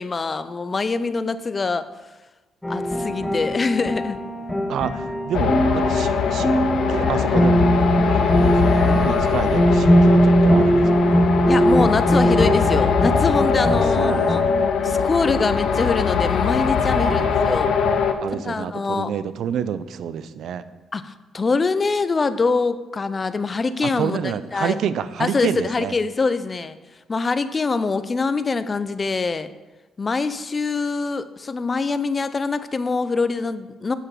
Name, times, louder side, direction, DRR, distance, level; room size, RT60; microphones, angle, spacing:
voice 1, 0.0-1.9 2.7-4.2 11.5-14.4 14.8-17.7 18.4-19.2 20.9-24.8 25.2-26.8 27.1-29.5 30.0-33.9, left 4 dB, 30° left, 13 dB, 0.5 m, -24 dB
sound 1, 2.6-14.4, equal, 10° left, 1.1 m, -20 dB
voice 2, 4.7-6.5 6.9-7.8 8.1-11.3 13.6-14.3 16.9-17.4 18.2-20.6 23.8-25.9, right 8 dB, 75° right, 14 dB, 0.4 m, -28 dB
sound 2, 5.3-18.1, left 6 dB, 70° left, 0.7 m, -21 dB
8.0 x 6.0 x 4.6 m, 1.1 s
cardioid pair, 90°, 0 cm